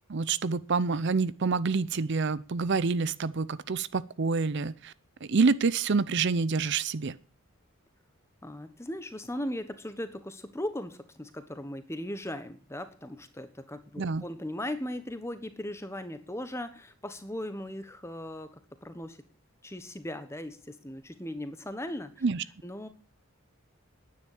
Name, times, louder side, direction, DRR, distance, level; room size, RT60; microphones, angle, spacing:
voice 1, 0.1-4.9 5.2-7.2 14.0-14.2 22.2-22.4, right 4 dB, 55° right, 17 dB, 0.5 m, -27 dB
voice 2, 8.4-19.2 19.6-22.2 22.6-22.9, left 1 dB, 10° left, 11 dB, 1.2 m, -38 dB
10.5 x 9.8 x 8.7 m, 0.42 s
head